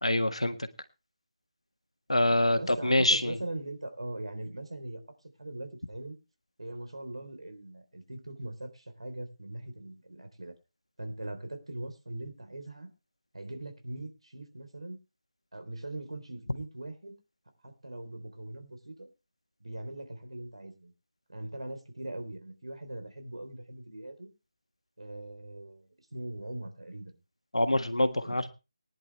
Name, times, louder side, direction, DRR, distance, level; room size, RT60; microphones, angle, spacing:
voice 1, 0.0-0.6 2.1-3.4 27.5-28.5, left 1 dB, 80° left, 9 dB, 1.6 m, -25 dB
voice 2, 2.5-5.0 5.4-6.2 6.6-10.5 11.0-12.9 13.3-15.0 15.5-17.2 17.6-19.1 19.6-20.9 21.3-24.3 25.0-27.2 28.2-28.5, right 1 dB, 70° right, 7 dB, 3.5 m, -41 dB
19.5 x 10.5 x 3.2 m, 0.29 s
figure-of-eight pair, 155°, 3 cm